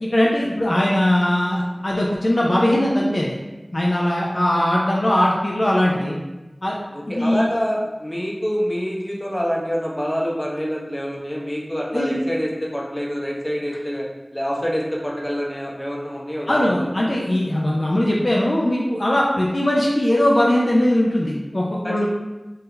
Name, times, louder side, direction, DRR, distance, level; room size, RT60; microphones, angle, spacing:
voice 1, 0.1-3.3 3.7-6.2 6.6-6.8 7.1-7.5 11.9-12.2 16.5-22.1, left 1 dB, 60° left, -4 dB, 0.6 m, -20 dB
voice 2, 6.9-14.1 14.3-16.9 21.8-22.1, equal, 25° left, -3 dB, 0.8 m, -26 dB
3.8 x 2.7 x 3.4 m, 1.1 s
wide cardioid pair, 40°, 0 cm